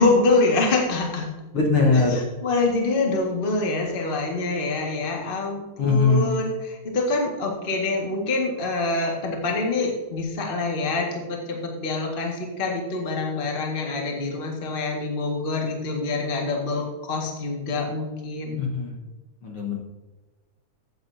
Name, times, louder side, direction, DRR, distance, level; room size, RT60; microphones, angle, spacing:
voice 1, 0.0-1.3 2.1-18.6, left 3 dB, 25° left, 0 dB, 1.3 m, -25 dB
voice 2, 1.5-2.3 5.8-6.4 18.6-19.0 19.4-19.8, left 3 dB, 55° left, -1 dB, 1.7 m, -21 dB
15.0 x 8.6 x 2.7 m, 1.1 s
omnidirectional pair, 3.5 m